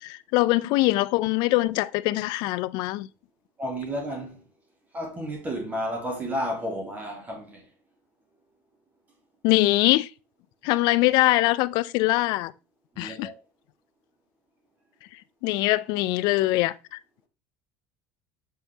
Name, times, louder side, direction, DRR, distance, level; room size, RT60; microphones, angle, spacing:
voice 1, 0.0-3.1 9.4-10.1 10.6-12.5 13.0-13.3 15.4-16.7, left 18 dB, 65° left, 0.4 m, -22 dB
voice 2, 3.6-4.4 4.9-7.6 13.0-13.3, equal, 20° right, 1.8 m, -32 dB
7.5 x 5.6 x 2.9 m
cardioid pair, 135°, 8 cm